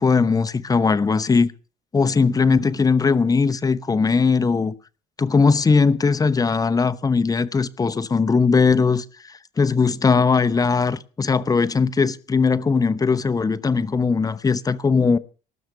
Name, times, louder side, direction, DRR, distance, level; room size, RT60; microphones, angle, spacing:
voice 1, 0.0-1.5 1.9-4.7 5.2-9.0 9.6-15.2, left 4 dB, 20° left, 0.9 m, -19 dB
19.0 x 6.5 x 8.0 m
cardioid pair, 110°, 17 cm